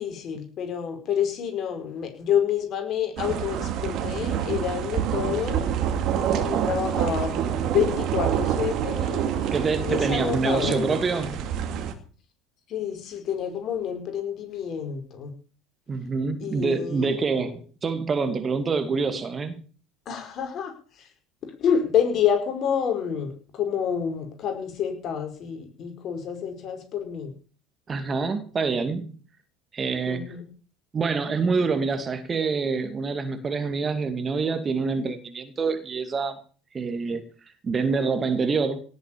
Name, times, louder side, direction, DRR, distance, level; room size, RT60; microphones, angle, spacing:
voice 1, 0.0-5.7 6.3-9.3 9.8-11.1 12.7-15.3 16.4-17.1 20.1-20.7 21.6-27.3 30.1-30.4, left 8 dB, 50° left, 5.2 m, -28 dB
sound 1, 3.2-11.9, right 9 dB, 55° right, 2.4 m, -27 dB
voice 2, 9.5-11.4 15.9-19.6 27.9-29.1 29.7-30.2 30.9-36.4 36.7-37.2 37.6-38.8, right 4 dB, 30° right, 2.5 m, -26 dB
18.0 x 8.1 x 7.4 m
hypercardioid pair, 70°, 0 cm